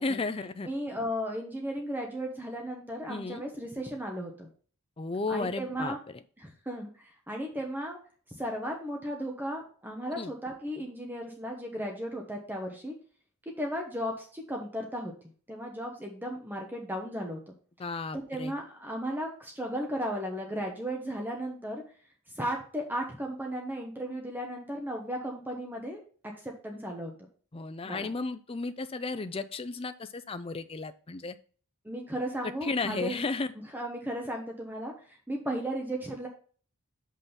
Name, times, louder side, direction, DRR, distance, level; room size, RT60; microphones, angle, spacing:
voice 1, 0.0-0.7 3.1-3.4 5.0-6.0 10.2-10.3 17.8-18.5 27.5-31.4 32.6-33.5, left 3 dB, 25° left, 10 dB, 0.5 m, -34 dB
voice 2, 0.6-4.5 5.3-6.0 6.4-8.0 8.3-12.9 13.6-15.1 15.5-17.4 18.1-21.8 22.3-26.0 26.4-27.1 27.8-28.1 31.8-33.2 33.7-36.3, equal, 10° right, 1 dB, 1.0 m, -35 dB
6.1 x 5.6 x 5.7 m, 0.43 s
head